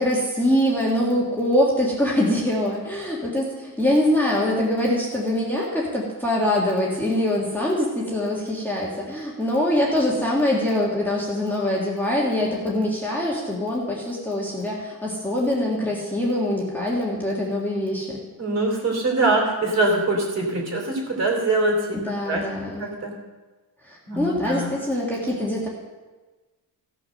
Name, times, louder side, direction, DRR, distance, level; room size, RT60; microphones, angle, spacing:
voice 1, 0.0-18.2 21.9-22.9 23.8-25.7, left 1 dB, 5° left, -5 dB, 1.7 m, -23 dB
voice 2, 18.4-22.0 22.2-22.4 22.8-23.1 24.1-24.7, right 2 dB, 40° right, 0 dB, 3.3 m, -23 dB
15.5 x 6.2 x 6.5 m, 1.3 s
cardioid pair, 160°, 40 cm